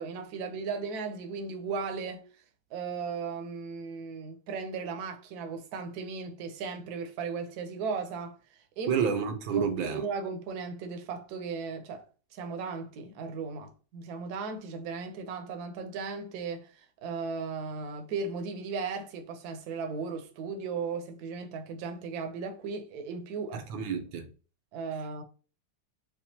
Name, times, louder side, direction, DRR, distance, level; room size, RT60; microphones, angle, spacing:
voice 1, 0.0-2.2 2.7-9.0 9.5-12.0 12.3-23.7 24.7-25.2, right 5 dB, 65° right, 1.1 m, -36 dB
voice 2, 8.9-10.0 23.5-24.3, right 7 dB, 90° right, 1.6 m, -30 dB
7.1 x 2.5 x 2.8 m
omnidirectional pair, 2.1 m